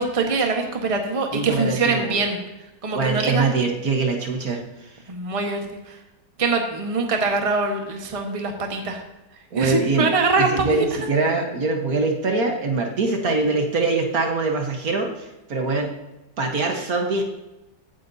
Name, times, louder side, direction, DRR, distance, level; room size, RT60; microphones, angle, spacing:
voice 1, 0.0-2.4 2.8-3.4 5.1-6.0 6.4-9.0 9.6-10.8, right 3 dB, 20° right, 2 dB, 1.3 m, -23 dB
voice 2, 1.3-2.2 2.9-4.6 9.5-10.1 10.4-15.9 16.4-17.2, right 3 dB, 55° right, 2 dB, 1.7 m, -23 dB
16.0 x 9.3 x 2.8 m, 0.98 s
omnidirectional pair, 1.9 m